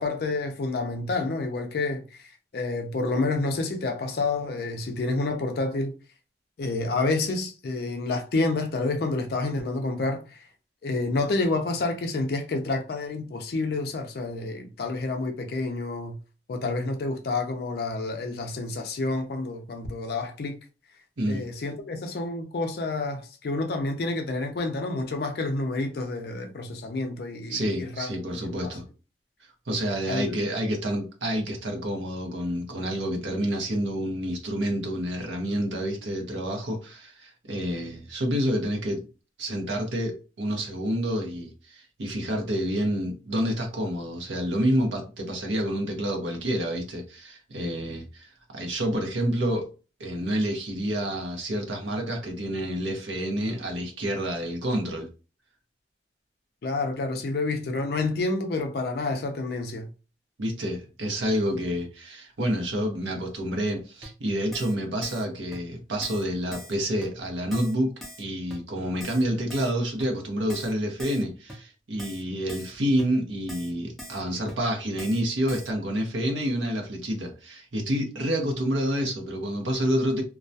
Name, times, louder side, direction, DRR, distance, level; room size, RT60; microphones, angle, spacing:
voice 1, 0.0-2.3 2.5-5.9 6.6-10.4 10.8-16.2 16.5-20.6 21.3-28.1 28.6-28.8 30.1-30.4 56.6-59.9, left 3 dB, 55° left, 0.4 m, -29 dB
voice 2, 27.5-28.8 29.7-39.0 39.4-49.7 50.0-55.1 60.4-67.9 68.2-80.2, equal, 80° right, 0.7 m, -28 dB
Keyboard (musical), 64.0-64.1 64.5-64.8 65.0-65.3 65.5-65.6 66.0-66.2 66.5-66.7 67.0-67.1 67.5-67.7 68.0-68.2 68.5-68.6 69.0-69.2 69.5-69.7 70.0-70.1 70.5-70.7 71.0-71.2 71.5-71.6 72.0-72.2 72.5-72.7 73.0-73.1 73.5-73.7 74.0-74.2 74.5-74.6 75.0-75.2 75.5-75.7, equal, ahead, 0.5 m, -42 dB
2.2 x 2.1 x 2.6 m
head